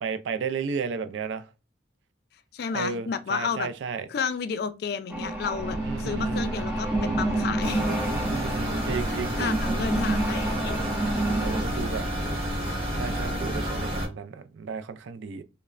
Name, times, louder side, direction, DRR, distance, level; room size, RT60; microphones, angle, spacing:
voice 1, 0.0-1.4 2.7-4.1 5.8-6.5 8.3-9.6 11.4-12.0 13.0-15.4, right 5 dB, 80° right, 0.4 m, -33 dB
voice 2, 2.5-3.7 4.1-7.8 9.0-10.7, left 6 dB, 55° left, 0.3 m, -31 dB
sound 1, 5.1-11.6, right 2 dB, 5° right, 0.4 m, -29 dB
sound 2, 5.6-14.1, right 1 dB, 60° right, 0.7 m, -34 dB
sound 3, 7.6-14.0, equal, 30° right, 0.9 m, -31 dB
3.1 x 2.0 x 2.4 m
head